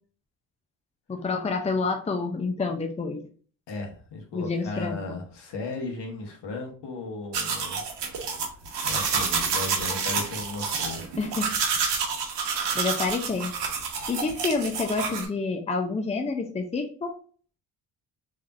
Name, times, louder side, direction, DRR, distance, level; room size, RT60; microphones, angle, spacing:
voice 1, 1.1-3.2 4.3-5.2 11.2-11.6 12.7-13.5 14.1-17.2, left 4 dB, 15° left, 5 dB, 0.6 m, -28 dB
voice 2, 3.7-7.8 8.1-8.4 8.8-11.1 12.4-12.7, left 3 dB, 65° left, 2 dB, 1.4 m, -36 dB
sound 1, 7.3-15.3, right 5 dB, 65° right, 1.1 m, -28 dB
3.5 x 3.4 x 2.6 m, 0.44 s
supercardioid pair, 55°, 44 cm